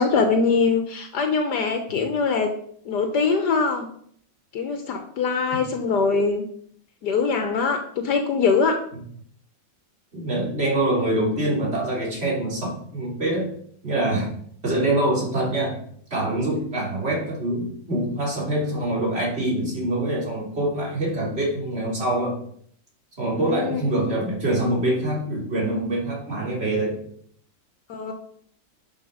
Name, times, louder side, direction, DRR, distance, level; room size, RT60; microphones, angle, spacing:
voice 1, 0.0-2.5 2.9-3.9 4.5-6.4 7.0-8.8 23.3-23.8 27.9-28.1, left 4 dB, 70° left, 6 dB, 1.5 m, -22 dB
voice 2, 10.1-13.5 13.8-14.3 14.6-15.8 16.1-22.4 23.2-27.0, right 1 dB, 35° right, -4 dB, 3.4 m, -25 dB
10.5 x 5.1 x 5.0 m, 0.62 s
omnidirectional pair, 1.9 m